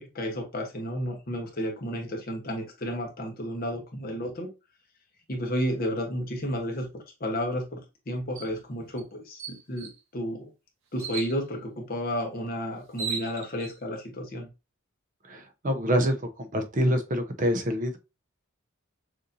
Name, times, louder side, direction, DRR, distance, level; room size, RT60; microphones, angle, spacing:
voice 1, 0.0-4.5 5.3-10.5 10.9-14.5, equal, 45° left, 2 dB, 1.1 m, -32 dB
sound 1, 8.4-8.5 9.0-9.1 9.4-10.0 11.0-11.4 12.5-12.6 12.8-13.7, right 5 dB, 60° right, 0.9 m, -36 dB
voice 2, 15.3-18.0, equal, 40° right, 6 dB, 0.6 m, -26 dB
6.5 x 2.6 x 2.7 m, 0.27 s
head